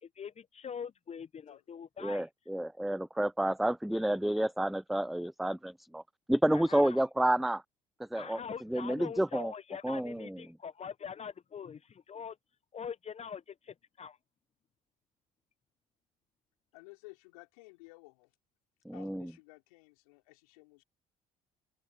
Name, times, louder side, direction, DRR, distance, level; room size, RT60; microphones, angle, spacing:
voice 1, 0.0-2.3 6.5-7.0 8.1-12.4 12.7-14.2, left 7 dB, 35° left, 0.9 m, -43 dB
voice 2, 2.0-6.0 6.3-7.6 8.1-8.4 8.7-9.5 9.8-10.4 18.9-19.3, right 1 dB, ahead, 0.4 m, -30 dB
voice 3, 16.7-18.3 18.9-20.8, left 26 dB, 80° left, 4.8 m, -55 dB
open air
hypercardioid pair, 55°, 18 cm